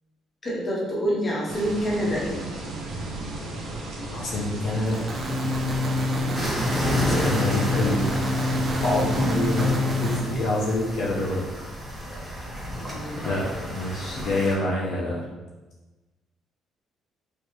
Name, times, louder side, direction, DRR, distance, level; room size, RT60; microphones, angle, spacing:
voice 1, 0.4-2.4 6.1-6.5 12.9-13.3, equal, 25° left, -6 dB, 1.1 m, -27 dB
sound 1, 1.5-9.7, right 1 dB, 80° right, 0.8 m, -35 dB
voice 2, 4.1-5.0 7.0-8.3 8.8-11.5 13.2-15.2, left 1 dB, 70° left, -3 dB, 0.7 m, -27 dB
Broken Speaker, 4.9-10.2, left 2 dB, 25° right, 0.5 m, -26 dB
sound 2, 6.3-14.5, equal, ahead, 0.9 m, -31 dB
4.2 x 2.4 x 3.1 m, 1.2 s
cardioid pair, 140°, 0 cm